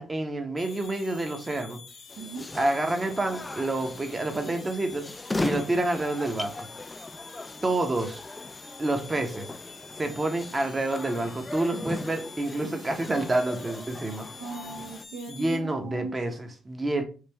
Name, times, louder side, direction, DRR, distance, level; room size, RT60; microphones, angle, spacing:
voice 1, 0.0-1.8 2.5-5.1 5.4-6.7 7.6-8.2 8.8-9.5 10.0-14.3 15.3-17.0, right 2 dB, 25° right, 0.8 m, -28 dB
sound 1, 0.6-15.6, left 6 dB, 55° left, 1.0 m, -48 dB
sound 2, 2.1-15.0, left 2 dB, 15° left, 0.3 m, -38 dB
voice 2, 2.2-2.5 14.4-16.4, right 4 dB, 75° right, 0.7 m, -38 dB
3.2 x 2.6 x 3.3 m
supercardioid pair, 65°, 0 cm